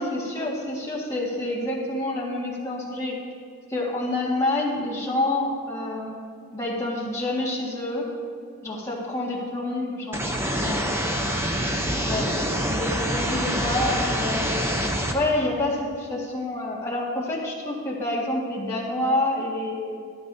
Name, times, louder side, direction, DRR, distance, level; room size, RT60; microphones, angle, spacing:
voice 1, 0.0-3.1 3.7-6.2 6.5-8.0 8.6-11.0 12.0-12.3 12.6-20.0, left 2 dB, 15° left, -5 dB, 1.7 m, -28 dB
sound 1, 10.1-15.1, equal, 10° right, 0.7 m, -26 dB
13.0 x 12.5 x 2.7 m, 2.3 s
head